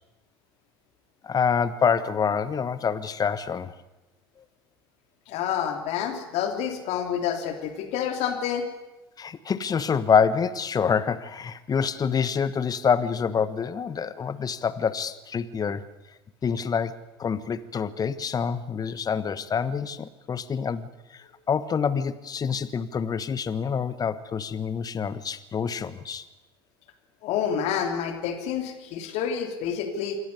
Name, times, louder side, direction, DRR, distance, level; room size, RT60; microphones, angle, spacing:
voice 1, 1.2-3.7 9.2-15.8 16.4-16.9 17.2-26.2, left 6 dB, 30° left, 14 dB, 1.3 m, -26 dB
voice 2, 5.3-8.7 27.2-30.2, left 8 dB, 55° left, 5 dB, 3.3 m, -28 dB
27.0 x 11.5 x 9.8 m, 1.0 s
hypercardioid pair, 70°, 13 cm